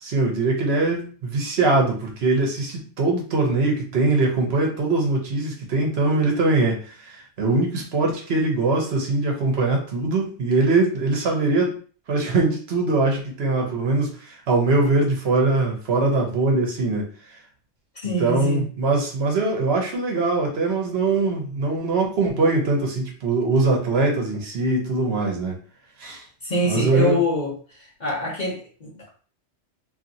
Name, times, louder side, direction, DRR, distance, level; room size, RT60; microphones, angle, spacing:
voice 1, 0.0-11.8 12.1-17.1 18.2-25.6 26.0-26.2 26.6-27.2, right 3 dB, 60° right, 1 dB, 1.0 m, -22 dB
voice 2, 18.0-18.7 26.4-27.5 28.0-29.1, left 1 dB, 45° left, -3 dB, 0.7 m, -25 dB
2.8 x 2.6 x 2.6 m, 0.41 s
omnidirectional pair, 1.2 m